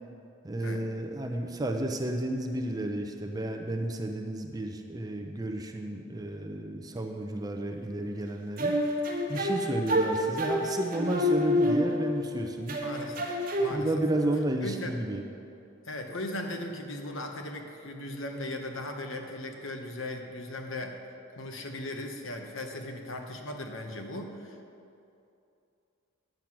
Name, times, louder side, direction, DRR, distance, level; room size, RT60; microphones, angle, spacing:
voice 1, 0.4-8.7 9.3-12.8 13.7-15.2, right 1 dB, 15° right, 3 dB, 0.6 m, -32 dB
sound 1, 8.6-12.3 12.7-13.7, left 1 dB, 40° right, 1.3 m, -28 dB
voice 2, 12.8-13.3 13.6-13.9 14.6-15.0 15.9-21.0 21.3-24.6, left 1 dB, 65° left, 3 dB, 1.1 m, -37 dB
10.5 x 7.5 x 6.1 m, 2.6 s
head